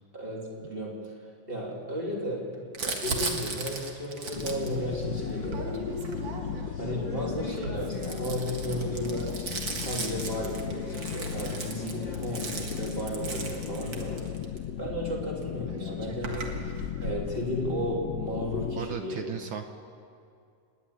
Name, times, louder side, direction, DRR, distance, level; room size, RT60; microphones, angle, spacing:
voice 1, 0.1-1.1 1.5-5.8 6.8-14.2 14.8-19.2, equal, 20° right, -2 dB, 3.1 m, -34 dB
Crumpling crinkling, 2.7-6.8 7.5-14.6 15.4-15.5 15.7-17.3, right 3 dB, 45° right, 2.2 m, -37 dB
sound 1, 4.3-18.9, left 9 dB, 70° left, 1.7 m, -36 dB
sound 2, 4.7-14.3, left 2 dB, 15° left, 1.6 m, -42 dB
voice 2, 18.8-19.6, right 8 dB, 70° right, 6 dB, 1.2 m, -35 dB
26.5 x 9.9 x 10.0 m, 2.4 s
omnidirectional pair, 3.4 m